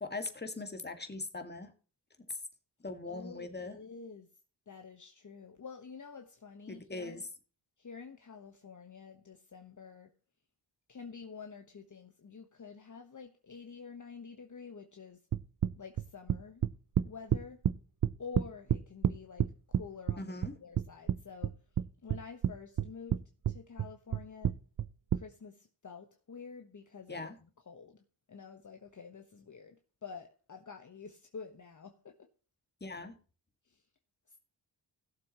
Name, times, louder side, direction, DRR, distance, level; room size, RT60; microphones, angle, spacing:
voice 1, 0.0-1.7 2.3-2.4 2.8-3.8 6.7-7.3 20.2-20.5 27.1-27.4 32.8-33.2, left 3 dB, 20° left, 1.9 m, -40 dB
voice 2, 3.1-4.4 4.7-7.2 7.8-10.1 10.9-15.2 15.8-16.6 17.0-17.6 18.2-20.3 20.6-21.6 22.0-24.6 25.1-28.0 28.3-32.3 33.6-33.9 34.3-34.4, left 5 dB, 40° left, 1.2 m, -49 dB
sound 1, 15.3-17.7 18.0-19.8 20.1-21.2 21.4-22.5 22.8-23.2 23.4-25.2, right 9 dB, 45° right, 0.6 m, -29 dB
17.0 x 7.3 x 3.0 m
cardioid pair, 65°, 46 cm